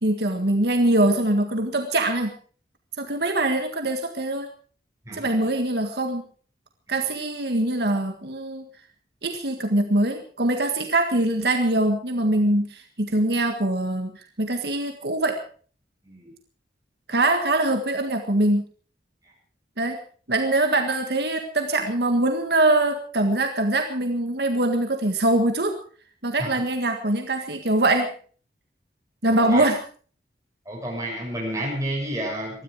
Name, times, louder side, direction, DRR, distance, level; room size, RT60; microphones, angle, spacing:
voice 1, 0.0-2.3 3.0-4.5 5.1-6.2 6.9-8.6 9.2-15.4 17.1-18.7 19.8-20.0 20.3-25.8 26.2-28.1 29.2-29.8, right 1 dB, 65° right, 5 dB, 1.8 m, -23 dB
voice 2, 5.1-5.4 6.9-7.0 16.0-16.3 26.4-26.5 29.3-29.7 30.7-32.6, right 1 dB, 20° right, -1 dB, 7.1 m, -30 dB
21.0 x 13.5 x 5.0 m, 0.43 s
head